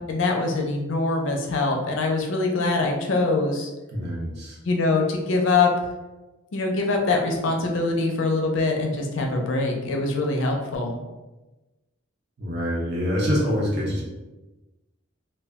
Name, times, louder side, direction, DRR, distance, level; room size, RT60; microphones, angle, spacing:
voice 1, 0.1-3.7 4.6-5.7 6.5-11.0, left 3 dB, 60° left, 2 dB, 0.4 m, -23 dB
voice 2, 3.9-4.6 12.4-14.0, equal, 50° right, -4 dB, 0.7 m, -25 dB
2.1 x 2.0 x 3.4 m, 1.1 s
head